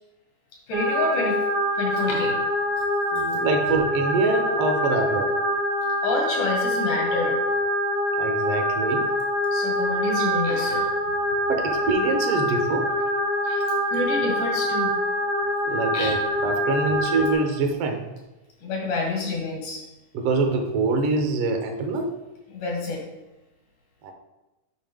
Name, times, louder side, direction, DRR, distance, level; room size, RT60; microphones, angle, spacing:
voice 1, 0.7-1.4 1.7-2.4 6.0-7.4 9.5-10.9 13.4-14.9 15.9-16.2 18.6-19.8 22.5-23.0, left 3 dB, 80° left, 0 dB, 3.2 m, -28 dB
sound 1, 0.7-17.3, equal, 55° right, 0.5 m, -25 dB
voice 2, 3.1-5.3 8.2-9.1 11.5-12.9 15.7-18.0 20.1-22.1 24.0-24.1, right 3 dB, 70° right, 3 dB, 1.4 m, -25 dB
9.0 x 5.6 x 3.5 m, 1.0 s
omnidirectional pair, 3.6 m